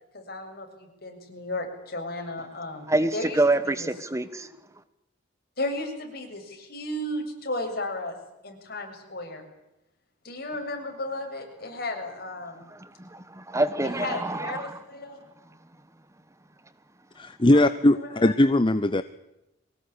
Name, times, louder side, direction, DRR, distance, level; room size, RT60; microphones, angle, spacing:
voice 1, 0.1-3.9 5.6-8.2 8.4-9.4 10.2-12.7 13.8-15.2 17.5-17.7 17.9-18.3, left 1 dB, 55° left, 3 dB, 7.5 m, -34 dB
voice 2, 2.9-4.5 13.0-14.7, right 2 dB, 15° right, 13 dB, 1.2 m, -26 dB
voice 3, 17.1-19.0, left 1 dB, 25° left, 12 dB, 0.9 m, -20 dB
24.0 x 19.0 x 10.0 m, 0.91 s
head